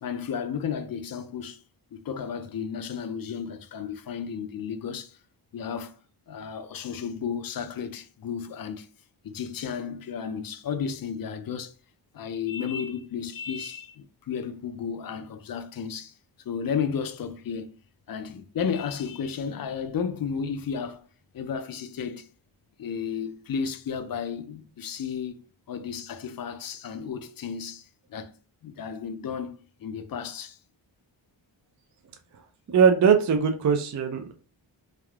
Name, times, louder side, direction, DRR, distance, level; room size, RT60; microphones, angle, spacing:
voice 1, 0.0-1.6 1.9-5.2 5.5-6.0 6.3-8.9 9.2-11.7 12.1-16.2 16.4-17.7 18.1-21.1 21.3-22.3 22.8-28.3 28.6-30.6, left 7 dB, 45° left, 0.5 m, -33 dB
voice 2, 32.7-34.3, right 6 dB, 40° right, 0.5 m, -20 dB
3.4 x 2.2 x 2.3 m
cardioid pair, 45°, 49 cm